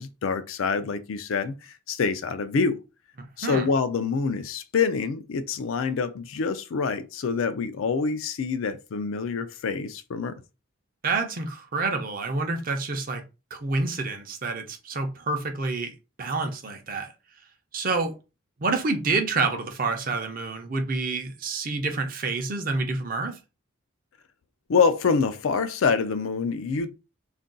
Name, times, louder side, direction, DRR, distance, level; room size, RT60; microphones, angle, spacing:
voice 1, 0.0-2.8 3.4-10.4 24.7-26.9, left 5 dB, 80° left, 0.4 m, -26 dB
voice 2, 3.2-3.7 11.0-13.2 13.5-15.9 16.2-17.1 17.7-18.1 18.6-23.4, right 3 dB, 45° right, 0.5 m, -28 dB
2.5 x 2.2 x 3.7 m
head